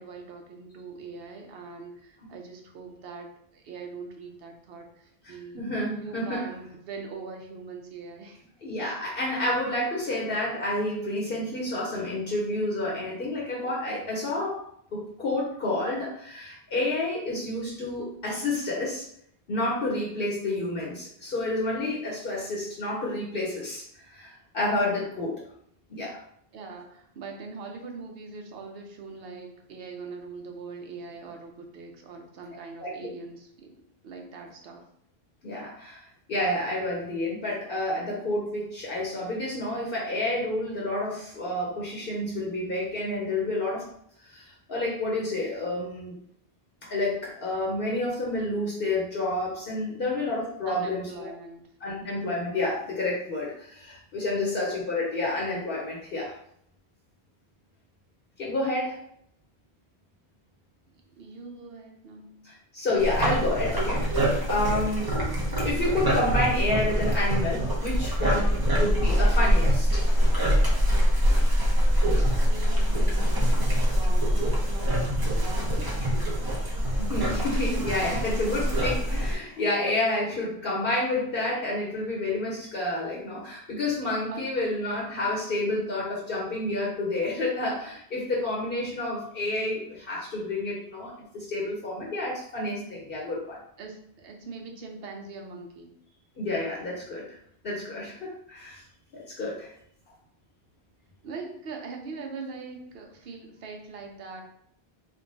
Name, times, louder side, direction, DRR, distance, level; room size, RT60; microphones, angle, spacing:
voice 1, 0.0-5.6 6.0-8.5 26.5-34.9 50.6-51.6 54.3-54.5 60.9-62.4 72.2-76.0 78.3-78.4 84.3-84.5 93.8-95.9 101.2-104.4, right 4 dB, 70° right, 2 dB, 0.9 m, -42 dB
voice 2, 5.3-6.4 8.6-14.6 14.9-19.0 19.5-23.8 24.1-25.4 25.9-26.2 32.8-32.9 35.4-43.8 44.2-46.2 46.9-51.3 51.8-56.3 58.4-59.0 62.4-65.1 65.6-70.0 77.0-93.6 96.4-97.3 97.6-98.8 99.1-99.7, left 2 dB, 60° left, -4 dB, 1.0 m, -29 dB
sound 1, 63.0-79.3, equal, 25° right, 0.7 m, -24 dB
3.4 x 2.3 x 3.9 m, 0.68 s
omnidirectional pair, 1.1 m